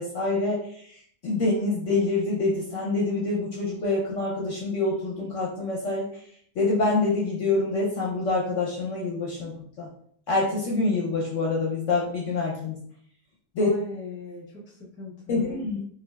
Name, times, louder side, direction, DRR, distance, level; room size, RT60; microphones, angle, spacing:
voice 1, 0.0-6.2 6.6-9.9 10.3-12.8 13.5-13.7 15.3-15.8, left 3 dB, 60° left, -3 dB, 0.8 m, -26 dB
voice 2, 13.6-15.6, left 2 dB, 10° left, -3 dB, 0.5 m, -40 dB
4.7 x 2.3 x 2.3 m, 0.62 s
omnidirectional pair, 1.8 m